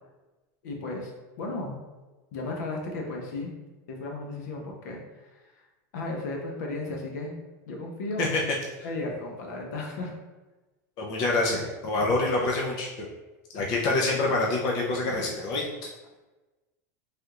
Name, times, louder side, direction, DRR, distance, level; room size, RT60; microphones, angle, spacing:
voice 1, 0.6-1.1 1.4-1.8 2.3-3.5 3.9-5.6 5.9-7.3 7.7-8.3 8.8-10.1, left 2 dB, 75° left, 0 dB, 0.8 m, -34 dB
voice 2, 11.0-13.1 13.5-15.9, left 2 dB, 45° left, -2 dB, 0.5 m, -26 dB
3.3 x 2.4 x 2.9 m, 1.2 s
supercardioid pair, 145°, 9 cm